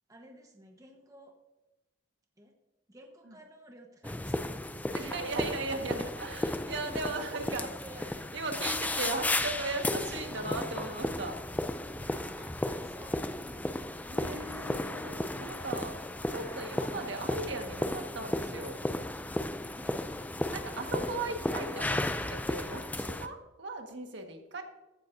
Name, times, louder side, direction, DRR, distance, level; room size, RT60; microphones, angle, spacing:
voice 1, 0.1-1.4 2.4-2.5 2.9-5.1 6.7-7.1 7.5-8.2 9.0-10.0 12.0-14.6 16.1-16.9 19.7-20.3 20.7-22.4, equal, 15° right, 2 dB, 1.1 m, -54 dB
sound 1, 4.0-23.3, left 1 dB, 10° left, 0.4 m, -34 dB
voice 2, 4.9-7.7 8.1-11.3 14.1-16.0 16.3-18.8 20.5-22.0 22.5-24.6, right 2 dB, 65° right, 4 dB, 1.6 m, -37 dB
15.0 x 12.5 x 2.7 m, 1.0 s
head